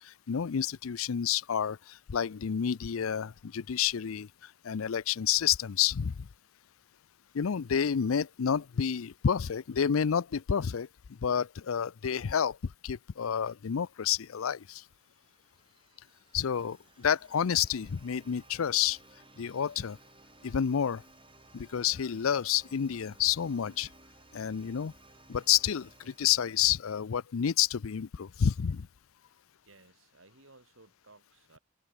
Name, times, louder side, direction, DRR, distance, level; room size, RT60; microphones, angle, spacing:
voice 1, 0.0-6.3 7.3-14.8 16.3-19.0 19.4-20.0 20.4-21.0 21.5-23.9 24.3-24.9 25.3-28.9, left 8 dB, 90° left, 0.5 m, -29 dB
sound 1, 13.5-27.3, right 3 dB, 25° right, 7.9 m, -59 dB
voice 2, 29.6-31.6, right 3 dB, 75° right, 6.5 m, -58 dB
head